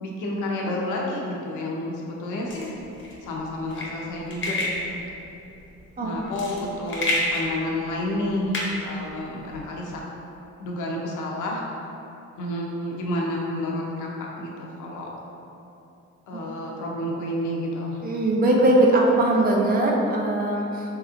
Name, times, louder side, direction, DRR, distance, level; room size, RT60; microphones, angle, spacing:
voice 1, 0.0-2.7 3.2-5.1 6.0-10.0 10.6-11.6 12.4-15.1 16.3-18.0, left 1 dB, 80° left, -2 dB, 0.6 m, -30 dB
sound 1, 2.5-9.7, left 1 dB, 40° left, 0.7 m, -31 dB
voice 2, 6.0-6.6 18.0-20.8, right 1 dB, 30° right, -1 dB, 0.5 m, -21 dB
3.3 x 2.8 x 2.4 m, 2.9 s
cardioid pair, 90°, 30 cm